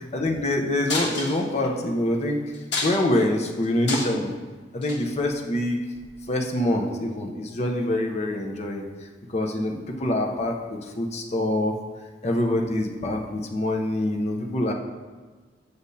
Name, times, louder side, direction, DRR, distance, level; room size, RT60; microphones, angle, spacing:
voice 1, 0.0-2.5 2.8-4.3 4.7-5.8 6.3-8.9 9.3-11.7 12.2-14.7, left 1 dB, 40° left, 2 dB, 0.7 m, -25 dB
sound 1, 0.9-1.7 2.1-2.2 2.5-3.2 3.6-4.3 4.8-5.0 6.0-6.1, left 3 dB, 90° left, 1.2 m, -29 dB
8.3 x 6.7 x 2.7 m, 1.4 s
head